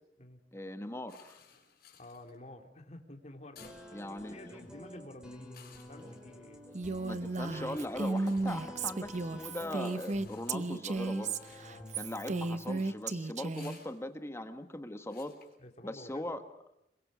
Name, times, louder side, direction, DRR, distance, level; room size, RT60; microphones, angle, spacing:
voice 1, 0.5-1.4 3.9-4.4 6.7-11.3 11.9-15.3 15.8-16.4, left 1 dB, 15° left, 8 dB, 1.3 m, -40 dB
sound 1, 1.1-16.3, left 8 dB, 60° left, 5.5 m, -61 dB
voice 2, 2.0-6.6 11.6-11.9 15.6-16.3, left 1 dB, 40° left, 4 dB, 2.7 m, -51 dB
sound 2, 3.6-13.0, left 1 dB, 5° right, 5.0 m, -50 dB
Female speech woman speaking, 6.7-13.8, right 3 dB, 45° right, 0.8 m, -34 dB
27.0 x 22.0 x 6.2 m, 0.80 s
head